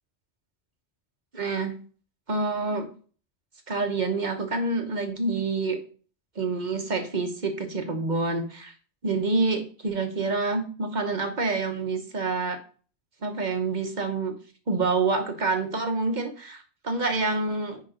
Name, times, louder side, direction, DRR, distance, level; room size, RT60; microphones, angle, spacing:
voice 1, 1.3-1.7 2.3-2.9 3.7-5.8 6.4-8.7 9.0-12.6 13.2-14.3 14.7-17.8, right 3 dB, 40° right, 5 dB, 1.3 m, -27 dB
10.0 x 3.7 x 5.1 m, 0.41 s
omnidirectional pair, 1.2 m